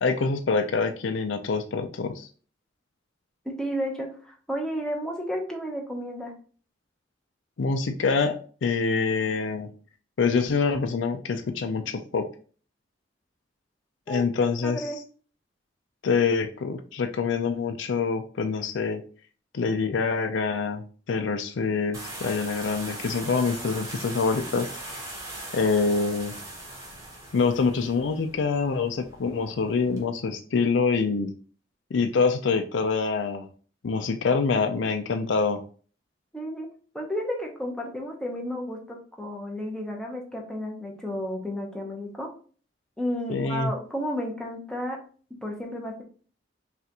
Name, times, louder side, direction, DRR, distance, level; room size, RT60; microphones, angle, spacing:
voice 1, 0.0-2.3 7.6-9.7 10.2-12.3 14.1-14.8 16.0-19.0 19.5-24.7 24.9-25.0 25.5-26.3 27.3-31.3 31.9-33.4 33.8-35.6 43.3-43.7, left 4 dB, 85° left, 6 dB, 0.5 m, -25 dB
voice 2, 3.4-6.3 14.1-15.0 36.3-36.7 36.9-42.3 43.0-45.0 45.4-46.0, equal, 5° left, 0 dB, 0.9 m, -32 dB
sound 1, 21.9-30.0, right 1 dB, 20° right, 1.0 m, -40 dB
5.5 x 2.5 x 2.9 m, 0.41 s
head